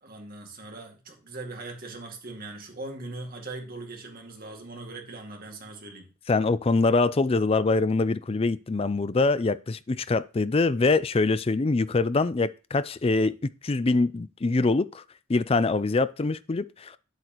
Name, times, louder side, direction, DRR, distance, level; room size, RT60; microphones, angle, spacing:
voice 1, 0.0-6.1, right 2 dB, 50° right, 2.2 m, -40 dB
voice 2, 6.3-13.4 13.6-15.0 15.3-17.0, left 3 dB, 30° left, 0.4 m, -24 dB
8.3 x 8.0 x 3.0 m
head